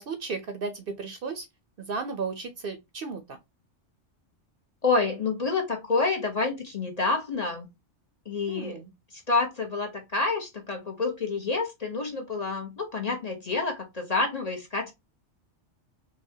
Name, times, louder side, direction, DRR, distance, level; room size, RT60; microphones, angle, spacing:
voice 1, 0.0-1.5 1.8-3.4 8.5-8.9, right 4 dB, 60° right, 0.7 m, -34 dB
voice 2, 4.8-7.7 8.3-8.8 9.3-14.9, left 3 dB, 40° left, 0.8 m, -28 dB
4.9 x 2.2 x 2.7 m
omnidirectional pair, 1.2 m